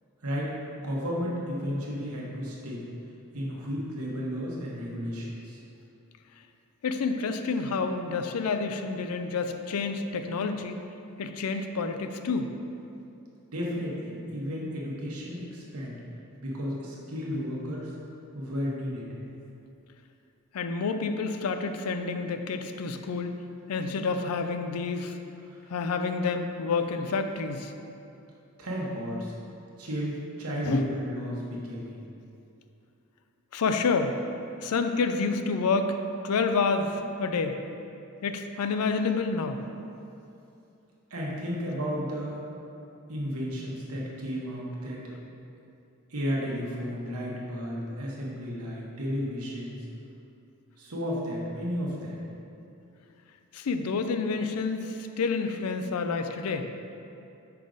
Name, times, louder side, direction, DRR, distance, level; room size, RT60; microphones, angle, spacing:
voice 1, 0.2-0.5 0.8-2.8 3.3-5.6 13.5-16.0 16.4-17.9 18.3-19.1 25.5-25.6 28.6-29.3 29.8-32.0 41.1-42.4 43.1-45.0 46.1-49.8 50.8-52.2, equal, 75° right, -4 dB, 1.2 m, -33 dB
voice 2, 6.8-10.8 11.2-12.6 20.5-23.3 23.7-25.2 25.7-27.7 30.6-30.9 33.5-34.2 34.6-36.0 36.2-37.6 38.2-39.6 53.5-56.7, left 4 dB, 80° left, 7 dB, 0.4 m, -28 dB
5.6 x 4.9 x 3.9 m, 2.7 s
head